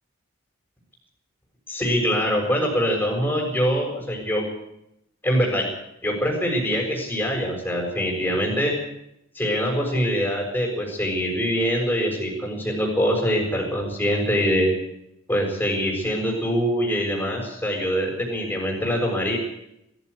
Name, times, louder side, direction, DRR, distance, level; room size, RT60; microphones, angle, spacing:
voice 1, 1.7-4.5 5.2-5.7 6.0-8.7 9.3-14.7 15.3-19.4, equal, 10° left, -2 dB, 6.8 m, -24 dB
21.0 x 15.5 x 8.3 m, 0.80 s
head